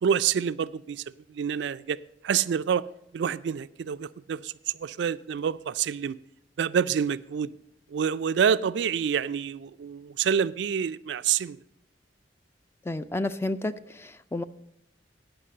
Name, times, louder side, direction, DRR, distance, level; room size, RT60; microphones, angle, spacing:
voice 1, 0.0-2.0 2.2-2.9 3.1-4.5 4.8-6.2 6.6-7.5 7.9-11.6, right 7 dB, 65° right, 15 dB, 0.3 m, -27 dB
voice 2, 12.9-14.4, left 2 dB, 15° left, 12 dB, 0.3 m, -31 dB
9.7 x 5.8 x 7.6 m, 0.77 s
head